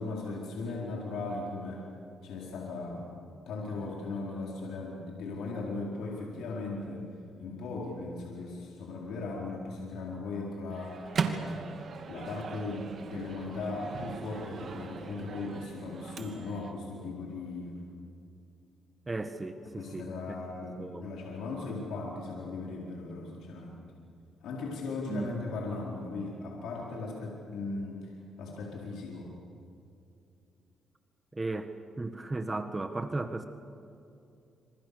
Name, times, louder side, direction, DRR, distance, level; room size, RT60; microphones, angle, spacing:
voice 1, 0.0-1.8 2.2-3.1 3.5-7.1 7.4-11.0 12.1-17.8 19.8-23.8 24.4-28.0 28.4-29.3, left 3 dB, 80° left, -2 dB, 4.3 m, -38 dB
Microwave oven, 10.7-16.7, right 5 dB, 50° right, 2.5 m, -38 dB
voice 2, 19.1-20.1 20.8-21.1 25.1-25.3 31.3-33.5, right 2 dB, 20° right, 8 dB, 1.5 m, -35 dB
27.0 x 26.5 x 7.0 m, 2.7 s
cardioid pair, 90°, 0 cm